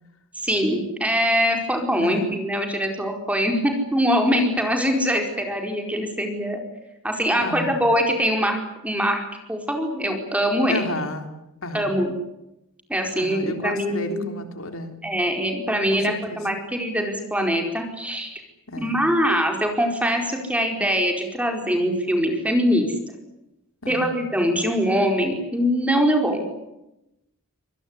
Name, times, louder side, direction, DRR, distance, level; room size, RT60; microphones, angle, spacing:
voice 1, 0.4-6.6 7.0-8.6 8.8-9.2 9.5-10.9 11.7-12.1 12.9-14.2 15.0-18.4 18.8-22.9 23.9-26.4, equal, 5° right, 3 dB, 4.7 m, -23 dB
voice 2, 7.4-7.8 10.7-11.3 11.6-12.0 13.1-15.0 15.9-16.4 18.7-19.0 23.8-24.1, left 2 dB, 75° left, 6 dB, 3.6 m, -32 dB
25.5 x 20.5 x 9.7 m, 0.90 s
head